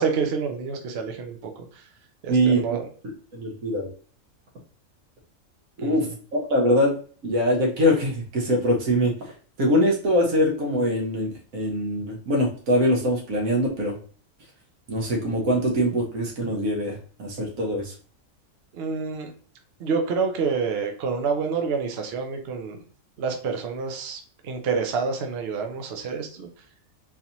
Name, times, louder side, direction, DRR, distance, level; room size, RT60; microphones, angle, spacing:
voice 1, 0.0-1.7 2.2-2.8 5.8-6.1 18.7-19.3 19.8-22.8 23.2-26.5, right 5 dB, 60° right, 4 dB, 0.8 m, -28 dB
voice 2, 2.3-2.8 3.3-3.9 5.8-6.0 6.3-6.9 7.2-9.1 9.6-13.9 14.9-17.9, equal, 80° right, -1 dB, 1.5 m, -23 dB
3.9 x 2.7 x 2.8 m, 0.43 s
omnidirectional pair, 1.4 m